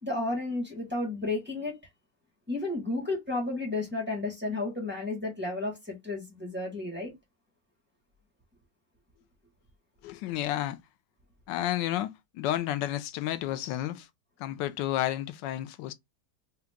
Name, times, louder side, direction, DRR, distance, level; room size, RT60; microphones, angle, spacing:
voice 1, 0.0-1.8 2.5-7.1, left 2 dB, 5° right, 1.3 m, -32 dB
voice 2, 10.0-10.8 11.5-14.1 14.4-15.9, left 13 dB, 90° left, 1.3 m, -31 dB
3.6 x 2.9 x 3.5 m
omnidirectional pair, 1.9 m